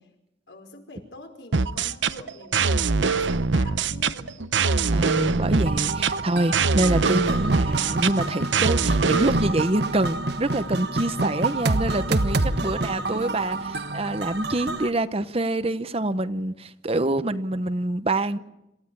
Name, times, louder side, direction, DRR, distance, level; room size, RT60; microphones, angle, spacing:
voice 1, 0.5-6.5 12.6-13.6 18.4-18.5, left 1 dB, 75° left, 5.2 m, -45 dB
sound 1, 1.5-9.5, right 4 dB, 85° right, 0.8 m, -23 dB
voice 2, 4.9-13.6 13.9-18.4, right 1 dB, 30° right, 0.9 m, -26 dB
sound 2, 5.7-14.9, right 2 dB, 60° right, 1.3 m, -28 dB
28.0 x 15.0 x 9.9 m
head